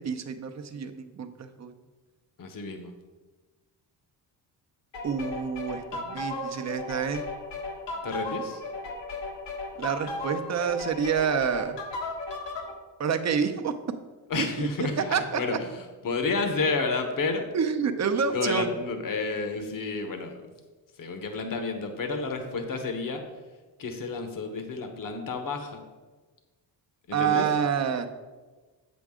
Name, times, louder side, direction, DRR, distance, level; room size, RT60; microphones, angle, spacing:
voice 1, 0.0-1.7 5.0-7.2 9.8-11.8 13.0-13.7 15.1-15.4 17.5-18.7 27.1-28.1, right 7 dB, 40° right, 7 dB, 0.7 m, -28 dB
voice 2, 2.4-2.9 8.0-8.6 14.3-17.5 18.2-20.4 21.0-23.2 23.8-25.8 27.1-27.5, left 4 dB, 50° left, 6 dB, 1.2 m, -30 dB
sound 1, 4.9-12.7, left 2 dB, 75° left, 1.5 m, -35 dB
7.9 x 6.2 x 3.7 m, 1.3 s
cardioid pair, 75°, 43 cm